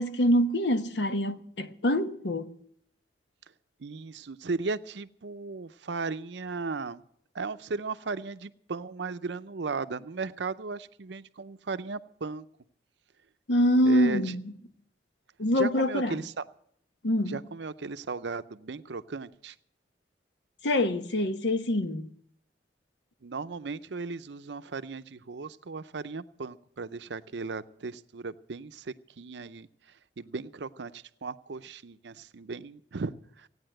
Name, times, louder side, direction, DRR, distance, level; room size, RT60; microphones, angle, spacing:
voice 1, 0.0-2.5 13.5-14.5 15.4-16.2 17.0-17.4 20.6-22.1, equal, 70° left, 0.9 m, -25 dB
voice 2, 3.8-7.0 7.3-12.5 13.8-14.3 15.5-16.4 17.3-19.5 23.2-29.7 30.2-33.5, right 4 dB, 70° right, 0.6 m, -36 dB
16.0 x 9.6 x 7.7 m
head